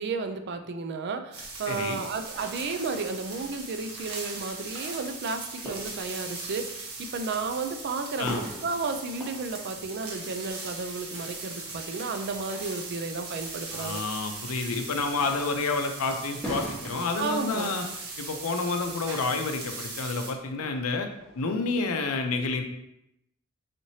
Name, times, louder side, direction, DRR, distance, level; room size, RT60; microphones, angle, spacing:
voice 1, 0.0-14.0 17.2-17.7, right 4 dB, 50° right, 7 dB, 0.4 m, -33 dB
sound 1, 1.3-20.3, right 3 dB, 90° right, 1.1 m, -39 dB
voice 2, 1.7-2.0 8.2-8.4 13.7-17.8 18.2-21.1 21.4-22.6, left 3 dB, 85° left, 5 dB, 0.5 m, -29 dB
sound 2, 2.3-21.5, equal, 5° left, 1.0 m, -46 dB
5.0 x 3.1 x 2.7 m, 0.81 s
head